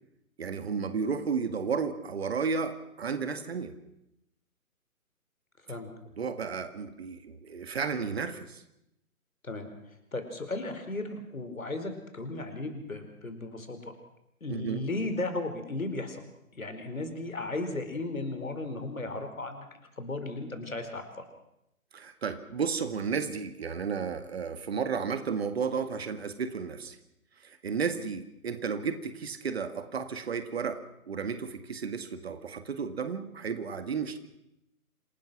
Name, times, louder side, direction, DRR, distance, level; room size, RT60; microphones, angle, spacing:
voice 1, 0.4-3.7 5.7-5.8 6.2-8.6 14.5-14.8 21.9-27.0 27.4-34.2, right 5 dB, 45° right, 10 dB, 2.0 m, -33 dB
voice 2, 10.1-13.8 14.4-16.2 16.6-19.7 20.0-21.0, left 2 dB, 70° left, 7 dB, 4.8 m, -35 dB
27.0 x 18.5 x 6.3 m, 0.84 s
figure-of-eight pair, 135°, 43 cm